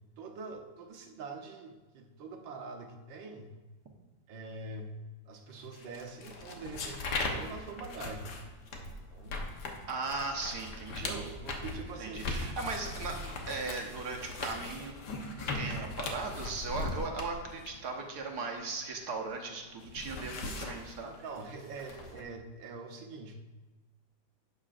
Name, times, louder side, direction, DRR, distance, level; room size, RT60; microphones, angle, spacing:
voice 1, 0.2-3.6 4.3-5.0 5.3-8.3 8.7-9.4 10.9-12.3 21.2-23.4, right 3 dB, 80° right, 3 dB, 1.7 m, -44 dB
sound 1, 5.7-19.2 19.5-22.2, left 2 dB, 65° left, 1.6 m, -39 dB
voice 2, 9.9-11.2 12.0-14.9 15.4-21.2, right 4 dB, 60° right, 1 dB, 1.6 m, -38 dB
11.5 x 8.8 x 2.5 m, 1.2 s
omnidirectional pair, 2.1 m